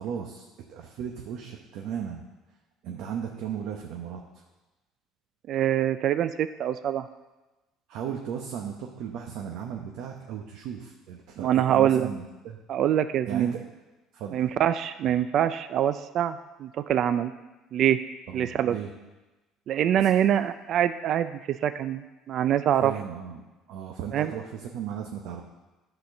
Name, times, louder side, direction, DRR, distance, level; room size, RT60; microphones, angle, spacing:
voice 1, 0.0-2.2 2.8-4.4 7.9-12.6 13.2-13.6 14.1-14.5 18.3-18.9 20.0-20.1 22.8-23.4 23.7-25.4, right 8 dB, 75° right, 2 dB, 0.9 m, -36 dB
voice 2, 5.5-7.1 11.4-12.1 12.7-13.5 14.3-17.3 17.7-18.0 18.3-18.8 19.7-22.9 24.1-24.3, right 10 dB, 55° right, 11 dB, 0.3 m, -24 dB
11.5 x 4.3 x 6.5 m, 1.1 s
cardioid pair, 120°, 0 cm